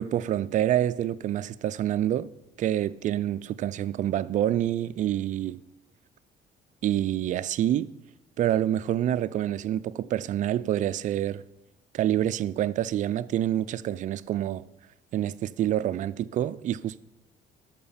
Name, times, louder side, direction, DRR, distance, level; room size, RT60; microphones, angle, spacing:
voice 1, 0.0-2.3 2.6-5.6 6.8-7.9 8.4-11.4 11.9-14.6 15.1-17.0, right 11 dB, 50° right, 0.4 m, -27 dB
12.5 x 4.3 x 5.7 m
cardioid pair, 110°, 17 cm